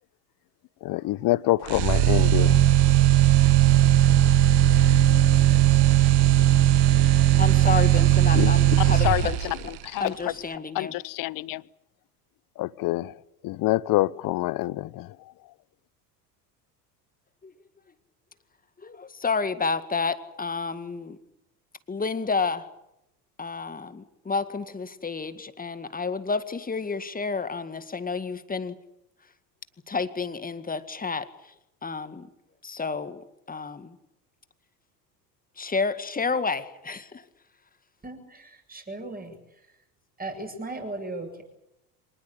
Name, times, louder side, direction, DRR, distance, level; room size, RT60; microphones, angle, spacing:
voice 1, 0.8-2.6 8.3-8.5 9.0-10.1 10.7-11.6 12.6-13.1 13.4-15.1, left 18 dB, 45° left, 23 dB, 0.9 m, -26 dB
sound 1, 1.7-9.7, right 13 dB, 50° right, 1.7 m, -18 dB
voice 2, 7.4-9.3 10.0-10.9 17.4-17.5 18.8-21.2 21.9-22.7 23.4-28.7 29.9-31.5 31.8-32.3 32.6-34.0 35.6-37.2, left 4 dB, 15° left, 12 dB, 2.0 m, -30 dB
voice 3, 38.0-39.4 40.2-41.4, right 2 dB, 20° right, 5 dB, 7.7 m, -37 dB
25.5 x 20.0 x 8.7 m, 0.85 s
hypercardioid pair, 75°, 48 cm